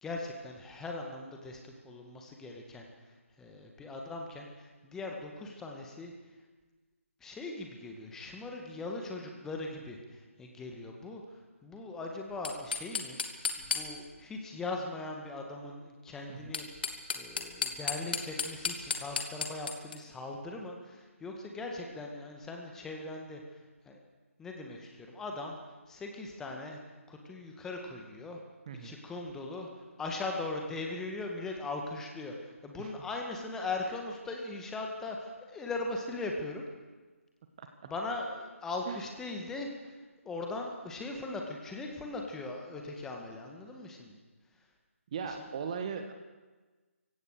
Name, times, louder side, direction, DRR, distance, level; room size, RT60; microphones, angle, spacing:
voice 1, 0.0-6.1 7.2-16.9 17.1-24.0 24.4-25.6 25.9-26.8 27.1-28.4 28.8-36.6 37.9-40.0 40.2-44.2 45.2-45.5, left 2 dB, 5° left, 1 dB, 2.0 m, -40 dB
sound 1, 12.3-14.2 16.3-20.0, left 5 dB, 45° left, 2.3 m, -34 dB
voice 2, 45.1-46.1, right 6 dB, 30° right, 6 dB, 1.5 m, -38 dB
25.0 x 16.5 x 6.8 m, 1.3 s
figure-of-eight pair, 150°, 8 cm